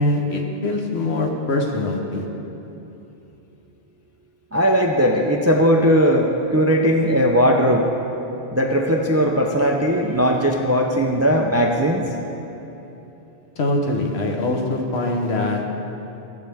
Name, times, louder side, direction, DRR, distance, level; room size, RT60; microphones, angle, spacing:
voice 1, 0.0-2.2 13.6-15.6, left 2 dB, 70° left, 1 dB, 1.3 m, -23 dB
voice 2, 4.5-7.9 8.5-12.0, equal, 25° right, 1 dB, 0.3 m, -18 dB
14.5 x 7.7 x 3.5 m, 3.0 s
omnidirectional pair, 1.1 m